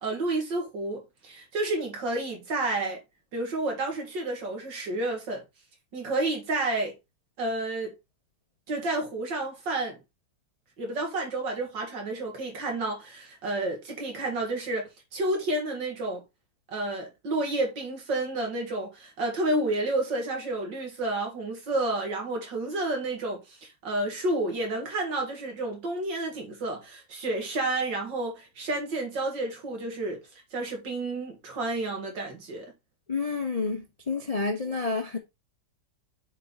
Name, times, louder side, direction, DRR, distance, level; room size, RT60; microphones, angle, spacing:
voice 1, 0.0-3.0 3.3-5.4 5.9-6.9 7.4-7.9 8.7-10.0 10.8-16.2 16.7-30.2 30.5-32.7, right 2 dB, 65° right, 2.7 m, -30 dB
voice 2, 33.1-35.2, left 4 dB, 35° left, 0.6 m, -29 dB
6.7 x 4.7 x 4.0 m
omnidirectional pair, 2.1 m